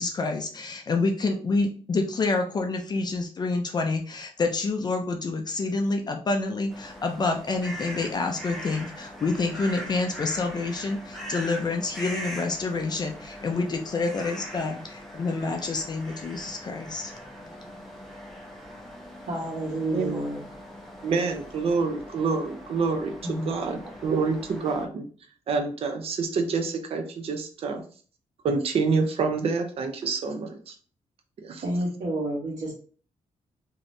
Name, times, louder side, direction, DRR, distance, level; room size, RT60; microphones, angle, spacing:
voice 1, 0.0-17.1, left 3 dB, 35° left, 4 dB, 0.4 m, -28 dB
sound 1, 6.7-24.9, equal, ahead, 0.8 m, -41 dB
voice 2, 19.3-20.4 23.2-23.5 31.6-32.7, right 1 dB, 70° right, -8 dB, 1.2 m, -29 dB
voice 3, 21.0-25.1 25.5-27.8 28.4-30.7 31.4-31.6, right 4 dB, 50° right, 5 dB, 0.5 m, -27 dB
3.1 x 2.7 x 2.6 m, 0.41 s
cardioid pair, 135°, 12 cm